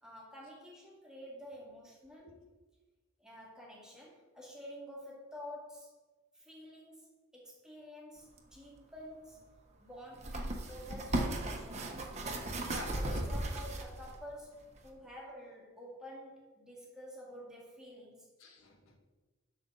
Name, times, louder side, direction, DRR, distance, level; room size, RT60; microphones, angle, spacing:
voice 1, 0.0-2.3 3.2-5.9 6.3-9.5 9.8-12.3 12.9-18.3, equal, 5° right, -5 dB, 2.3 m, -49 dB
sound 1, 8.4-8.5 10.1-14.2 14.8-14.9, right 1 dB, 35° right, 1.2 m, -36 dB
voice 2, 12.2-13.2 18.4-19.0, left 2 dB, 85° left, 3 dB, 1.5 m, -49 dB
11.5 x 6.8 x 4.0 m, 1.2 s
head